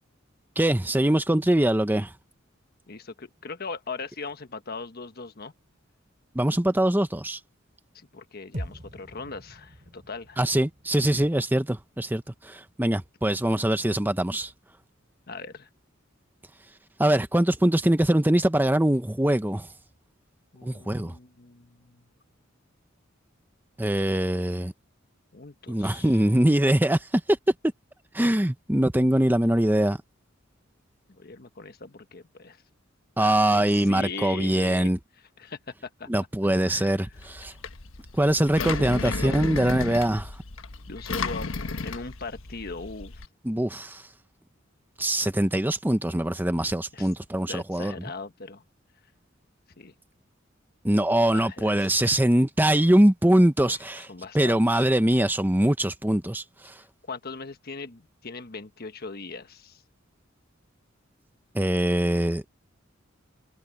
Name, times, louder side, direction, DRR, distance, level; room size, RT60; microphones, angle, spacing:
voice 1, 0.6-2.1 6.3-7.4 10.4-14.5 17.0-19.7 20.6-21.1 23.8-24.7 25.7-27.2 28.1-30.0 33.2-35.0 36.1-37.5 38.2-40.3 43.4-44.0 45.0-47.9 50.8-54.1 54.3-56.7 61.5-62.4, right 1 dB, 10° right, 0.9 m, -23 dB
voice 2, 2.9-5.5 7.9-10.4 15.3-15.7 20.5-22.0 25.3-26.2 31.1-32.6 33.2-34.9 35.4-36.1 36.6-37.0 38.6-39.6 40.9-41.5 41.8-43.2 46.9-47.1 47.5-48.6 49.8-49.9 51.3-52.2 53.7-54.9 57.1-59.8, left 4 dB, 50° left, 1.3 m, -39 dB
sound 1, 8.5-12.9, equal, 40° right, 3.0 m, -43 dB
Engine, 37.1-43.3, left 3 dB, 85° left, 1.2 m, -34 dB
head